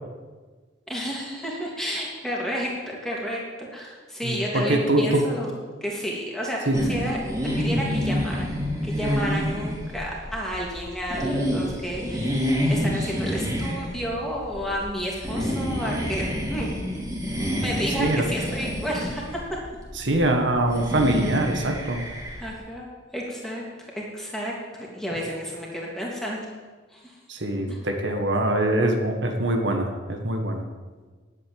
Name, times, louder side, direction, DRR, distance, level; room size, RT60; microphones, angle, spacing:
voice 1, 0.9-5.5 5.8-7.2 7.6-17.0 17.6-19.2 22.4-22.9 23.1-26.5 26.9-27.2 27.7-27.8, equal, ahead, -4 dB, 2.9 m, -31 dB
voice 2, 4.2-5.3 6.7-6.8 18.0-18.3 19.9-22.0 27.3-30.6, right 1 dB, 75° right, 4 dB, 1.6 m, -23 dB
sound 1, 6.7-22.5, equal, 20° right, 2.7 m, -28 dB
10.5 x 8.5 x 8.7 m, 1.4 s
head